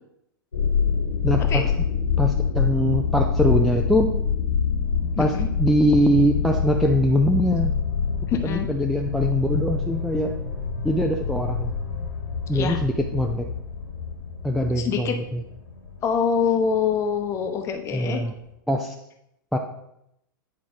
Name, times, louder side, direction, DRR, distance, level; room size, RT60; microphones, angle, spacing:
sound 1, 0.5-17.9 18.2-18.3, left 6 dB, 75° left, 1.8 m, -26 dB
voice 1, 1.2-1.6 2.2-4.2 5.2-7.7 8.4-10.3 10.8-11.7 12.5-13.5 14.4-15.4 17.9-18.3 18.7-18.9 19.5-19.6, equal, ahead, 1 dB, 0.4 m, -22 dB
voice 2, 5.2-5.5 8.3-8.7 12.5-12.8 14.8-15.2 16.0-18.2, left 6 dB, 25° left, 6 dB, 0.8 m, -25 dB
9.0 x 4.8 x 3.6 m, 0.80 s
figure-of-eight pair, 100°, 11 cm